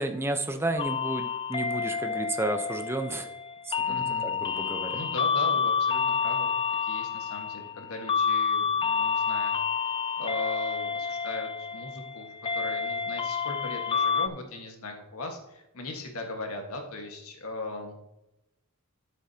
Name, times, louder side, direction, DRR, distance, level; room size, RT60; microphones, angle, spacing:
voice 1, 0.0-3.3 3.6-5.0, right 2 dB, 10° right, 5 dB, 0.8 m, -32 dB
sound 1, 0.8-14.3, left 6 dB, 25° left, 0.3 m, -29 dB
voice 2, 3.8-4.3 4.9-6.5 6.8-9.8 10.2-18.0, left 2 dB, 80° left, 3 dB, 1.7 m, -38 dB
11.0 x 8.5 x 2.9 m, 0.91 s
head